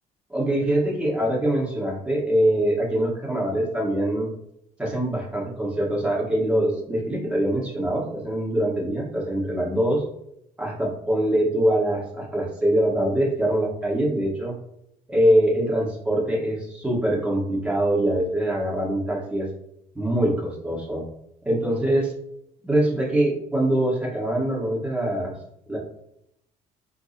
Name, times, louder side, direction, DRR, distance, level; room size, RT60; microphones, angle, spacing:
voice 1, 0.3-4.3 4.8-10.0 10.6-14.5 15.1-19.5 19.9-21.0 21.4-22.1 22.6-25.3 25.7-25.8, right 1 dB, 5° right, -4 dB, 1.2 m, -23 dB
3.6 x 2.0 x 3.8 m, 0.78 s
cardioid pair, 110°, 17 cm